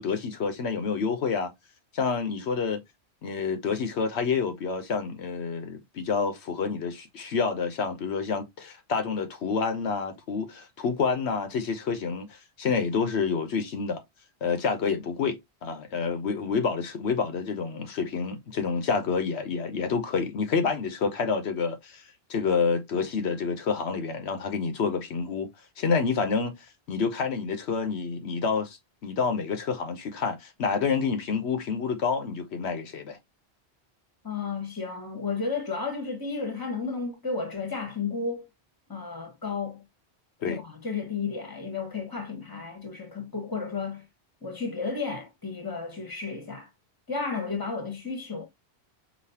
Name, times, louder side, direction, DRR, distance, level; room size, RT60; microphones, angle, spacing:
voice 1, 0.0-1.5 1.9-2.8 3.2-14.0 14.4-22.0 22.3-25.5 25.8-26.6 26.9-33.2 40.4-40.6, left 5 dB, 85° left, 1.1 m, -28 dB
voice 2, 34.2-38.5 38.9-39.8 40.5-44.0 44.4-46.7 47.1-48.4, left 4 dB, 20° left, 1.2 m, -33 dB
5.1 x 2.9 x 2.8 m
omnidirectional pair, 1.1 m